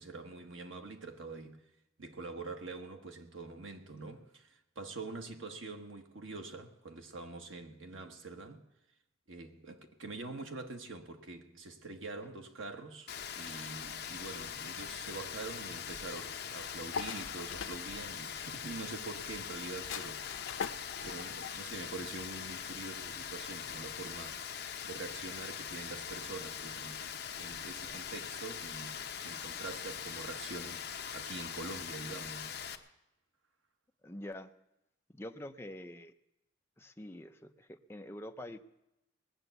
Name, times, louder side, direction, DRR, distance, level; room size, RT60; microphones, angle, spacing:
voice 1, 0.0-1.6 2.0-8.6 9.3-20.7 21.0-24.5 24.8-32.6, right 3 dB, 85° right, 1.4 m, -45 dB
Rain, 13.1-32.8, left 8 dB, 55° left, 0.8 m, -42 dB
sound 1, 14.1-24.2, left 6 dB, 90° left, 0.6 m, -47 dB
voice 2, 34.0-34.5 35.1-36.1 36.8-38.6, left 1 dB, 15° left, 0.5 m, -46 dB
20.0 x 6.9 x 8.0 m
head